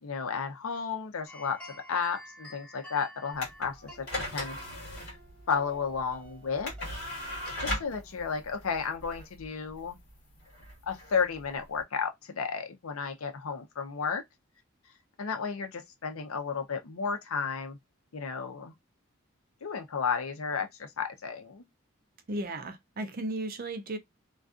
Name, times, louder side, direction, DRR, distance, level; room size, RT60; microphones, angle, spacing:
voice 1, 0.0-4.6 5.0-5.2 5.5-6.7 7.6-10.0 10.9-14.2 15.2-17.8 18.1-18.7 19.6-21.7, left 6 dB, 80° left, 0.6 m, -33 dB
sound 1, 1.3-8.8, equal, 5° left, 1.0 m, -51 dB
sound 2, 3.3-11.8, left 1 dB, 50° left, 1.4 m, -39 dB
voice 2, 22.3-24.0, right 1 dB, 45° right, 0.4 m, -35 dB
2.5 x 2.3 x 2.4 m
head